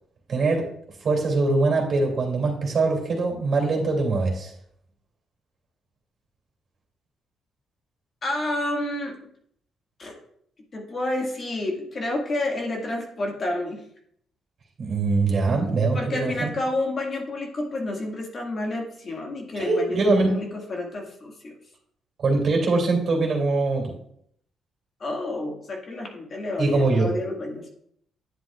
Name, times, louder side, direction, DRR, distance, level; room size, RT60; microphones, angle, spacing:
voice 1, 0.3-0.6 1.0-4.5 14.8-16.5 19.5-20.3 22.2-23.9 26.6-27.1, right 3 dB, 55° right, 0 dB, 2.6 m, -22 dB
voice 2, 8.2-9.2 10.0-10.1 10.7-13.8 15.9-20.0 20.3-21.5 25.0-27.8, left 2 dB, 40° left, 0 dB, 1.8 m, -29 dB
9.7 x 7.8 x 2.4 m, 0.68 s
cardioid pair, 90°, 0 cm